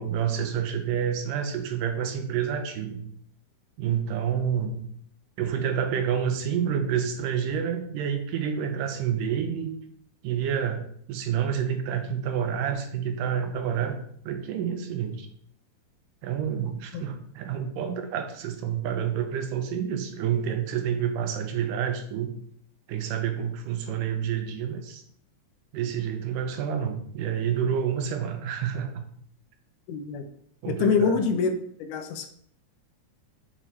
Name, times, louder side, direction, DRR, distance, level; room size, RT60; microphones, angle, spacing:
voice 1, 0.0-3.0 3.8-4.8 5.4-9.7 10.2-14.0 14.2-15.3 16.2-22.3 22.9-25.0 25.7-29.1 30.6-31.2, right 8 dB, 90° right, 6 dB, 2.5 m, -28 dB
voice 2, 29.9-30.2 30.7-31.5 31.8-32.3, left 5 dB, 80° left, 7 dB, 2.3 m, -25 dB
7.4 x 6.7 x 3.4 m, 0.65 s
omnidirectional pair, 3.8 m